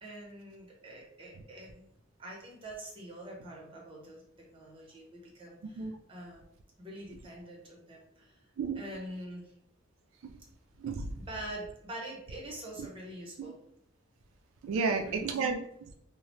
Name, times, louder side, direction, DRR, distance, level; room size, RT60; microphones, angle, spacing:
voice 1, 0.0-1.9 2.2-6.4 6.8-8.5 8.8-9.5 11.2-13.6 14.7-15.3, right 1 dB, 25° right, -2 dB, 0.8 m, -45 dB
voice 2, 5.6-5.9 8.6-8.8 10.8-11.1 12.8-12.9 13.4-13.5 14.6-15.9, right 4 dB, 90° right, 5 dB, 0.3 m, -32 dB
2.8 x 2.0 x 3.0 m, 0.73 s
head